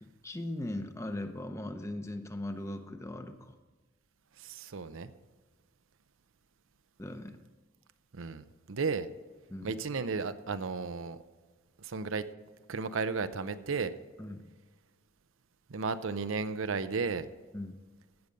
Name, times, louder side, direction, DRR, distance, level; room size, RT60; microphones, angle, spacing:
voice 1, 0.0-3.5 7.0-7.4 9.5-9.7 14.2-14.4 17.5-17.7, left 1 dB, 15° left, 7 dB, 0.8 m, -39 dB
voice 2, 4.4-5.1 8.1-9.1 9.6-11.2 11.8-12.2 12.7-13.9 15.7-17.3, right 4 dB, 75° right, 12 dB, 0.6 m, -34 dB
16.0 x 6.9 x 5.2 m, 1.4 s
head